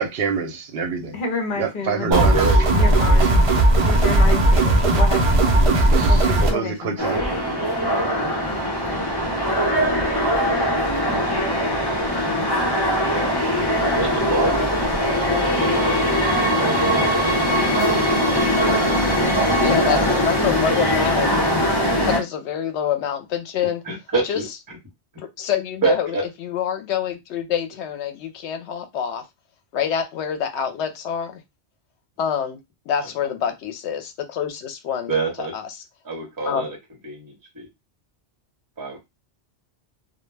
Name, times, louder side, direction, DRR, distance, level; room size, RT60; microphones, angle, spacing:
voice 1, 0.0-1.2 1.6-2.3 2.6-3.3 5.7-7.2, right 6 dB, 65° right, 0.8 m, -27 dB
voice 2, 1.1-2.1 2.7-3.4 3.8-5.3 6.1-7.0, left 3 dB, 55° left, 0.8 m, -29 dB
voice 3, 2.0-3.3 14.0-14.7 15.6-16.9 17.2-17.6 23.9-24.4 25.8-26.2 33.0-33.1 35.1-35.5 36.0-36.8 37.0-37.7 38.8-39.0, right 3 dB, 20° right, 0.7 m, -26 dB
sound 1, 2.1-6.5, right 1 dB, 45° right, 0.4 m, -16 dB
sound 2, 7.0-22.2, equal, 25° left, 0.8 m, -21 dB
voice 4, 19.6-21.3 22.0-23.8 24.2-24.4 25.4-29.2 29.7-31.4 32.2-32.6 32.9-35.1 35.4-35.7 36.4-36.7, left 8 dB, 80° left, 0.9 m, -26 dB
2.1 x 2.1 x 3.2 m
omnidirectional pair, 1.1 m